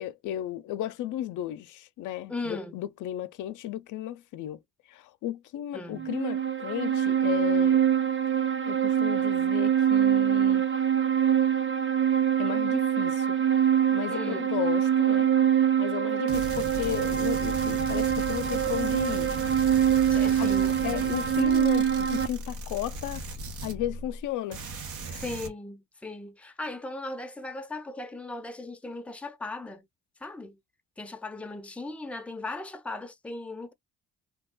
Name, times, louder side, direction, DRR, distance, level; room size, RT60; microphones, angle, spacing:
voice 1, 0.0-4.6 4.9-7.8 8.7-10.6 12.4-13.4 13.8-19.3 20.4-20.6 20.8-23.3 23.6-24.6 25.0-25.2, left 13 dB, 80° left, 0.5 m, -34 dB
voice 2, 2.3-2.8 5.7-6.2 14.1-14.5 20.1-20.8 25.1-29.9 30.2-30.6 31.0-33.7, left 2 dB, 5° left, 0.5 m, -37 dB
sound 1, 6.0-22.3, right 9 dB, 40° right, 0.6 m, -24 dB
sound 2, 16.3-24.2 24.5-25.5, right 3 dB, 80° right, 1.0 m, -37 dB
2.8 x 2.3 x 3.6 m
cardioid pair, 90°, 30 cm